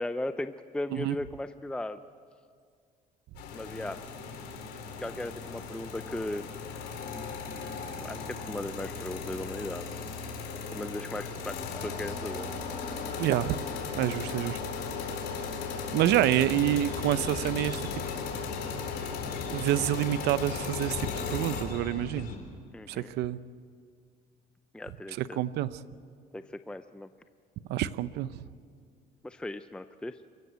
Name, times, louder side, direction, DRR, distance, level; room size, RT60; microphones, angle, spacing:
voice 1, 0.0-2.0 3.5-4.0 5.0-6.6 8.0-10.0 10.7-12.5 19.8-19.9 22.7-23.1 24.7-25.4 26.3-27.1 29.2-30.2, left 1 dB, 5° left, 10 dB, 0.5 m, -37 dB
sound 1, 3.3-21.6, left 5 dB, 85° left, 4.1 m, -37 dB
voice 2, 13.2-13.6 13.9-14.6 15.9-17.8 19.5-22.3 22.9-23.4 25.2-25.8 27.7-28.3, right 13 dB, 80° right, 15 dB, 0.7 m, -27 dB
sound 2, 16.0-22.4, left 5 dB, 65° left, 3.9 m, -42 dB
28.0 x 15.0 x 8.2 m, 2.1 s
cardioid pair, 110°, 17 cm